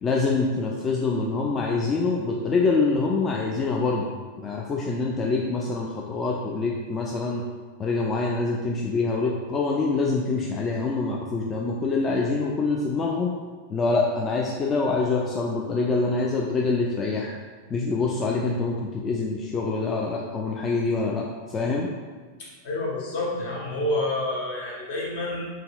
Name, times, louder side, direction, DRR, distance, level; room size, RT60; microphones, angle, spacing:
voice 1, 0.0-7.4 7.8-13.3 13.7-17.3 17.7-21.9, left 3 dB, 25° left, -1 dB, 0.3 m, -25 dB
voice 2, 22.4-25.5, left 1 dB, 55° left, -3 dB, 1.0 m, -29 dB
4.0 x 3.6 x 2.3 m, 1.5 s
figure-of-eight pair, 90°, 0 cm